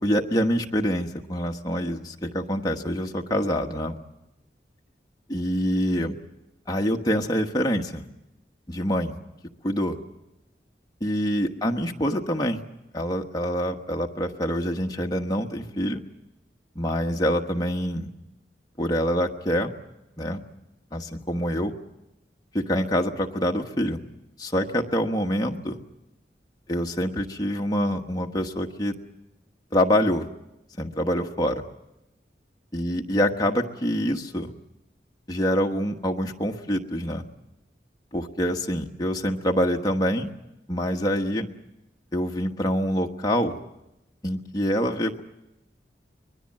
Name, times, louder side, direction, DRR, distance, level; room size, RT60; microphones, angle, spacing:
voice 1, 0.0-4.0 5.3-6.1 6.7-8.0 8.7-9.2 9.6-10.0 11.0-12.6 12.9-16.0 16.7-18.1 18.8-19.7 20.2-20.4 20.9-21.7 22.5-24.0 24.4-25.8 26.7-29.0 29.7-30.3 30.8-31.6 32.7-34.5 35.3-37.2 38.1-40.3 40.7-41.5 42.1-43.6 44.2-45.2, equal, 20° left, 2 dB, 1.2 m, -25 dB
24.0 x 21.0 x 7.6 m, 0.94 s
head